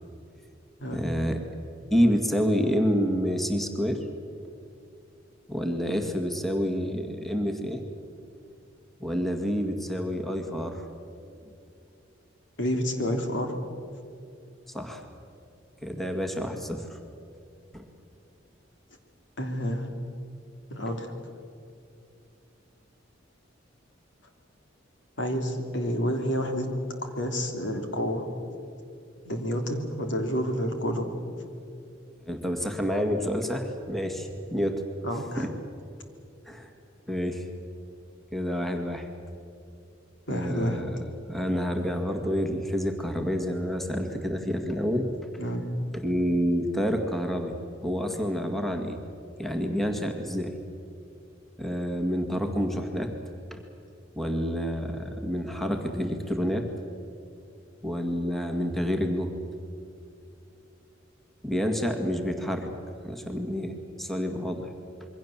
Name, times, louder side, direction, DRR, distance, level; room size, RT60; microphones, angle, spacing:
voice 1, 0.9-1.4 1.9-4.0 5.5-7.8 9.0-10.8 14.7-15.1 15.8-17.0 17.7-17.8 32.3-34.8 35.4-35.5 36.5-36.7 37.1-37.5 38.3-39.1 40.3-41.0 41.3-45.1 45.9-47.5 47.8-49.0 49.4-50.6 51.6-53.1 53.5-53.6 54.2-56.6 57.8-59.3 61.4-62.7 63.0-64.7, equal, ahead, 3 dB, 1.9 m, -28 dB
voice 2, 12.6-13.6 19.4-19.9 20.7-21.1 25.2-26.7 27.0-28.3 29.2-31.1 35.0-35.5 40.3-40.8 45.4-45.7, equal, 65° left, 4 dB, 3.2 m, -29 dB
27.0 x 23.0 x 7.4 m, 2.6 s
head